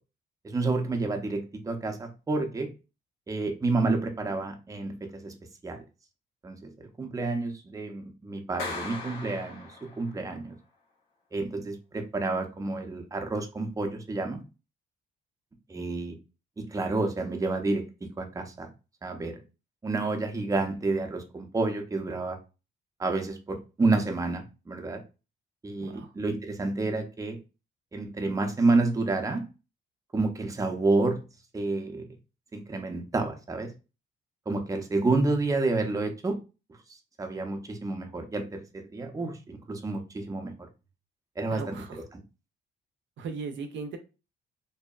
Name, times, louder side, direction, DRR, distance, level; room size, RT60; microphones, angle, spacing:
voice 1, 0.4-2.7 3.3-5.3 5.6-5.8 6.4-10.5 11.3-14.4 15.7-16.2 16.6-18.7 19.0-19.4 19.8-22.4 23.0-25.0 25.6-27.4 27.9-29.4 30.1-31.2 31.5-32.0 32.5-33.7 34.5-36.4 37.2-40.5 41.4-41.8 42.1-42.2, right 3 dB, 15° right, 4 dB, 0.5 m, -29 dB
Clapping, 8.6-10.2, left 4 dB, 85° left, 0.9 m, -39 dB
voice 2, 25.8-26.1 41.5-42.0 43.2-44.0, right 5 dB, 70° right, 7 dB, 0.5 m, -38 dB
2.7 x 2.1 x 2.3 m, 0.30 s
cardioid pair, 90°, 20 cm